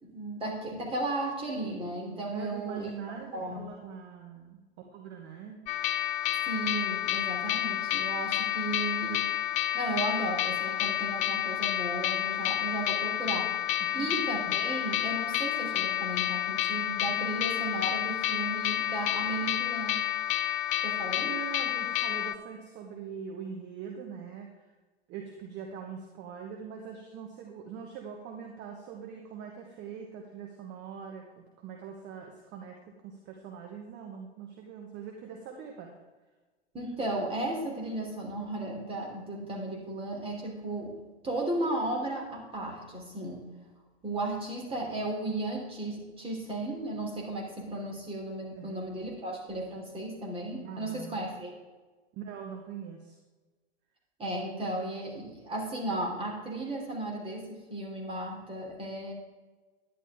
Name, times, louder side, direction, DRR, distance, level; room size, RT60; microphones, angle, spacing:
voice 1, 0.0-2.9 3.3-3.7 6.5-9.3 9.7-13.5 13.9-20.0 20.8-21.3 36.7-40.9 41.2-43.4 44.0-51.5 54.2-59.1, right 1 dB, 15° right, 0 dB, 3.2 m, -35 dB
voice 2, 2.3-5.6 13.8-14.3 21.1-24.7 25.1-35.9 48.6-48.8 50.6-51.2 52.1-53.2, right 7 dB, 35° right, 2 dB, 1.4 m, -42 dB
sound 1, 5.7-22.4, left 12 dB, 25° left, 0.5 m, -30 dB
11.0 x 10.5 x 3.7 m, 1.2 s
figure-of-eight pair, 100°, 32 cm